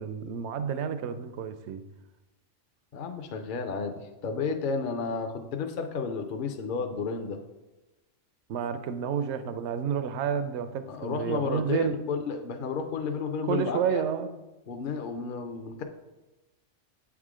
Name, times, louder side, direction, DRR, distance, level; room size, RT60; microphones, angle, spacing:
voice 1, 0.0-1.8 8.5-11.9 13.5-14.3, right 8 dB, 70° right, 0.8 m, -30 dB
voice 2, 2.9-7.4 10.9-14.0 14.7-15.8, left 5 dB, 55° left, 0.6 m, -32 dB
7.9 x 3.6 x 4.9 m
omnidirectional pair, 1.3 m